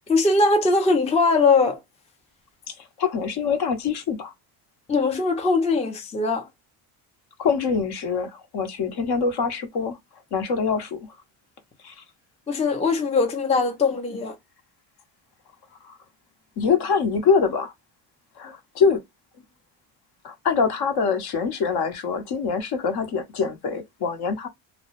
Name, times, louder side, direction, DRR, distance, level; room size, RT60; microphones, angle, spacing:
voice 1, 0.1-1.8 4.9-6.5 12.5-14.4, left 3 dB, 15° left, 0.5 m, -21 dB
voice 2, 2.7-4.3 7.4-10.0 10.3-11.2 11.8-12.0 15.8-16.0 16.6-17.7 18.4-19.0 20.2-24.5, left 5 dB, 50° left, 0.7 m, -24 dB
2.2 x 2.0 x 2.8 m
cardioid pair, 105°, 48 cm